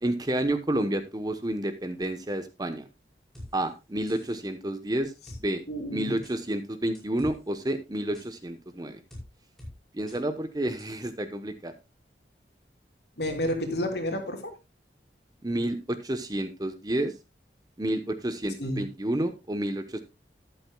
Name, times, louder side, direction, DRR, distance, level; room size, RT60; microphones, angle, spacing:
voice 1, 0.0-2.9 3.5-5.1 5.4-5.6 5.9-9.0 9.9-11.7 15.4-17.1 17.8-20.0, right 1 dB, 20° right, 9 dB, 0.9 m, -30 dB
sound 1, 3.3-3.5 4.1-4.4 5.3-5.4 6.2-6.4 6.9-7.3 8.1-8.3 9.1-9.2 9.6-9.7 10.1-10.2 10.8-10.9, left 1 dB, 5° left, 5.3 m, -43 dB
voice 2, 5.7-6.1 13.2-14.5 18.6-18.9, left 1 dB, 70° left, 3 dB, 3.0 m, -30 dB
13.0 x 11.5 x 2.3 m, 0.24 s
head